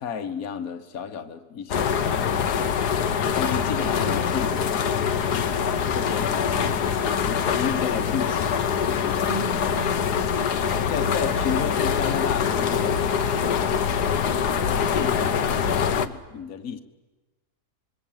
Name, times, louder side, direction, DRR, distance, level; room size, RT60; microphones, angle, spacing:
voice 1, 0.0-2.9 3.3-6.8 7.2-8.5 8.9-9.3 10.9-13.0 14.3-16.8, left 7 dB, 60° left, 8 dB, 1.8 m, -33 dB
sound 1, 1.7-16.1, left 7 dB, 75° left, 1.6 m, -24 dB
voice 2, 4.0-4.4 9.3-10.5 10.8-11.5, right 3 dB, 25° right, 7 dB, 2.0 m, -37 dB
26.5 x 22.5 x 9.2 m, 1.1 s
omnidirectional pair, 1.7 m